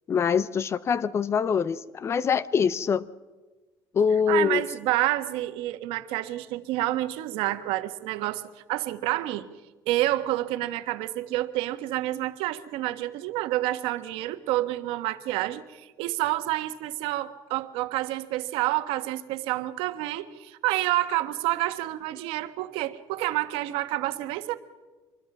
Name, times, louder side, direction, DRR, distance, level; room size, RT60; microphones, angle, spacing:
voice 1, 0.1-3.1 3.9-4.6, left 6 dB, 30° left, 0.7 m, -24 dB
voice 2, 4.3-8.4 8.7-9.5 9.9-24.6, right 16 dB, 90° right, 1.4 m, -28 dB
25.5 x 21.0 x 6.1 m
cardioid pair, 160°, 9 cm